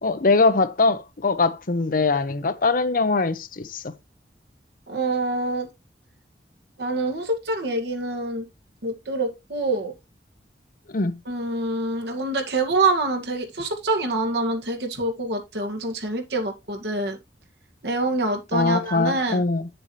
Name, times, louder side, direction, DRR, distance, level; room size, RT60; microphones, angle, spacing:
voice 1, 0.0-3.9 10.9-11.2 18.5-19.7, left 3 dB, 50° left, 0.8 m, -22 dB
voice 2, 4.9-5.7 6.8-8.5 8.8-9.9 11.3-17.2 17.8-19.4, right 2 dB, 70° right, 1.9 m, -26 dB
8.7 x 7.0 x 3.2 m
head